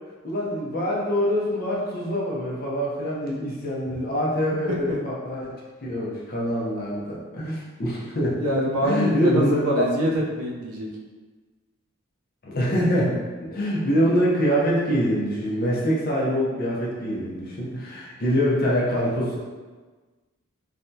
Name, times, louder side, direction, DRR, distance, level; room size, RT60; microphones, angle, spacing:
voice 1, 0.2-5.5 5.8-8.4 8.8-9.9 12.4-13.2 13.5-19.4, equal, 45° left, -4 dB, 0.7 m, -24 dB
voice 2, 8.4-10.9, equal, 85° right, -2 dB, 0.6 m, -25 dB
3.3 x 2.2 x 2.6 m, 1.3 s
head